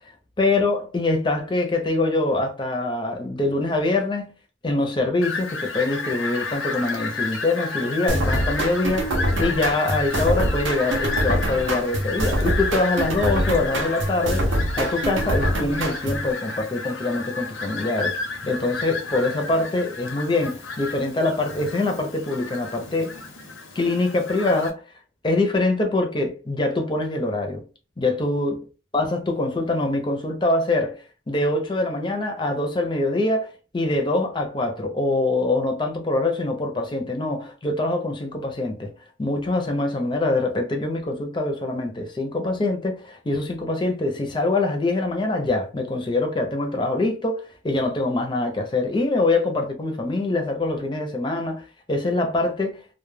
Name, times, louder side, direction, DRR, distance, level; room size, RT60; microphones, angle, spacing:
voice 1, 0.4-4.3 4.6-14.5 14.8-23.2 23.8-24.8 25.2-27.6 28.0-28.6 28.9-38.9 39.2-52.8, left 2 dB, 25° left, 0.4 m, -24 dB
Fowl, 5.2-24.7, left 3 dB, 85° left, 0.7 m, -32 dB
sound 1, 8.1-16.3, right 1 dB, 80° right, 0.6 m, -25 dB
2.2 x 2.1 x 3.2 m
head